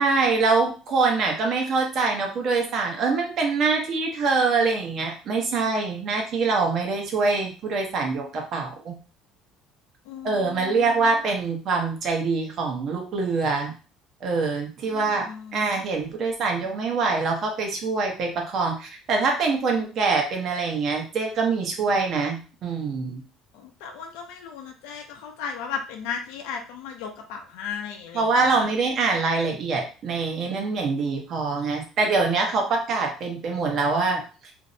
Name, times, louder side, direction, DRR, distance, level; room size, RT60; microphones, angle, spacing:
voice 1, 0.0-9.0 10.2-13.7 14.2-23.2 28.1-34.5, right 4 dB, 50° right, 2 dB, 0.8 m, -24 dB
voice 2, 10.1-11.2 14.8-15.8 23.5-28.7, left 7 dB, 85° left, 3 dB, 0.5 m, -36 dB
2.5 x 2.0 x 2.6 m, 0.36 s
cardioid pair, 115°, 0 cm